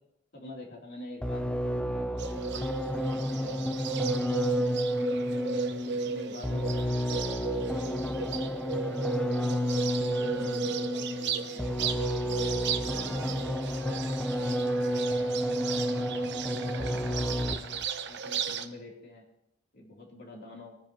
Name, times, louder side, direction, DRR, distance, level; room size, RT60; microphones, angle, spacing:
voice 1, 0.3-2.4 2.8-3.7 4.3-4.7 5.3-11.7 12.2-15.5 15.9-17.7 18.1-19.2 19.7-20.8, left 1 dB, 55° left, -2 dB, 3.1 m, -48 dB
sound 1, 1.2-17.8, equal, 5° left, 0.6 m, -31 dB
Bird, 2.2-18.7, right 6 dB, 60° right, 0.9 m, -36 dB
21.0 x 9.8 x 3.0 m, 0.82 s
head